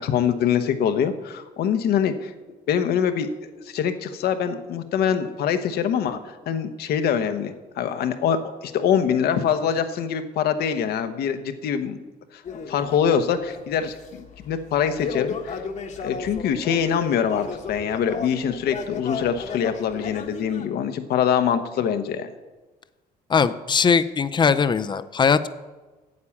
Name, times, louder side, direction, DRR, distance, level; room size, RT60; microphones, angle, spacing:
voice 1, 0.0-2.3 2.7-6.2 6.5-12.0 12.3-12.4 12.7-15.6 16.0-22.3, left 8 dB, 70° left, 9 dB, 1.0 m, -24 dB
sound 1, 12.4-20.7, left 5 dB, 45° left, 1.2 m, -35 dB
voice 2, 23.3-25.5, left 6 dB, 25° left, 13 dB, 0.5 m, -20 dB
9.6 x 8.5 x 7.1 m, 1.2 s
cardioid pair, 110°, 17 cm